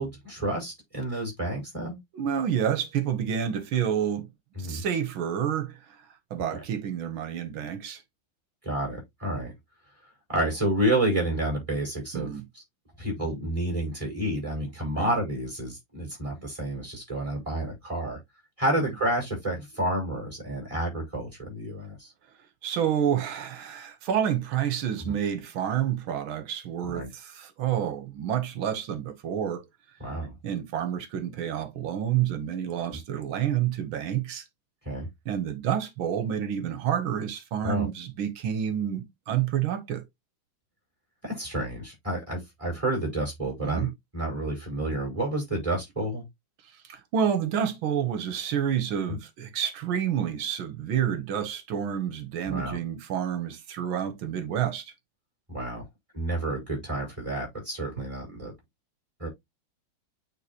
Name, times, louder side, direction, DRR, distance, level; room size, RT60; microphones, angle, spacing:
voice 1, 0.0-2.0 4.6-4.8 8.6-9.5 10.3-12.6 13.0-18.2 18.6-22.1 25.0-25.1 26.9-27.1 30.0-30.3 32.8-33.0 34.8-35.1 37.6-37.9 41.2-46.2 49.1-49.2 52.4-52.8 55.5-55.8 56.1-58.5 59.2-59.3, right 1 dB, 15° right, 5.0 m, -30 dB
voice 2, 2.1-4.3 4.6-6.0 6.3-8.0 12.1-12.4 15.0-15.1 18.8-18.9 22.6-29.6 30.4-34.4 35.2-40.0 43.6-43.9 46.8-54.9, right 9 dB, 80° right, 1.8 m, -29 dB
8.9 x 3.8 x 2.9 m
omnidirectional pair, 2.2 m